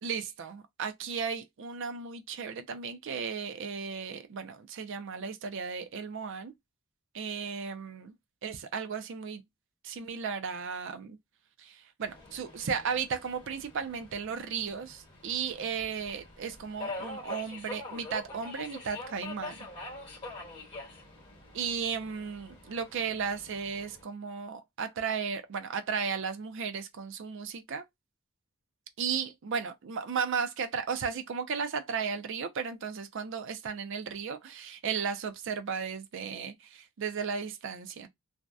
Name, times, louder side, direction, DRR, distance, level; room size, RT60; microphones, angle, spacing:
voice 1, 0.0-6.5 7.1-8.1 8.4-9.4 9.8-11.2 11.6-19.6 21.5-27.8 29.0-38.1, right 6 dB, 60° right, 0.4 m, -35 dB
Subway metro underground, 12.0-24.0, left 2 dB, 25° left, 1.2 m, -45 dB
2.6 x 2.1 x 2.2 m
head